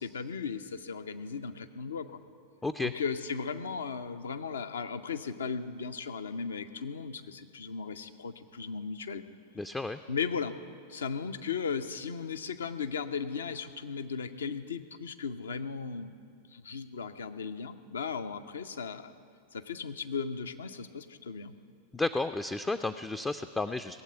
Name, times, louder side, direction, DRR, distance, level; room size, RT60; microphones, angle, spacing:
voice 1, 0.0-2.2 2.8-9.2 10.1-10.5 10.9-16.2 16.5-19.1 19.5-21.5, left 5 dB, 70° left, 9 dB, 0.7 m, -36 dB
voice 2, 2.6-2.9 9.6-10.0 21.9-24.0, left 2 dB, 10° left, 10 dB, 0.4 m, -32 dB
18.5 x 7.9 x 9.4 m, 2.2 s
figure-of-eight pair, 90°, 0 cm